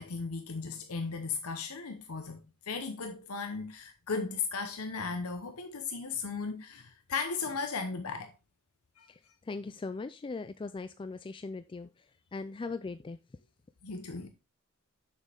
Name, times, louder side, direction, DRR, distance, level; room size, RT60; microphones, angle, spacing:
voice 1, 0.0-8.3 9.0-9.1 13.8-14.3, left 4 dB, 90° left, 0.9 m, -36 dB
voice 2, 9.5-11.9 12.3-13.2, left 3 dB, 25° left, 0.3 m, -39 dB
7.0 x 6.6 x 3.4 m
head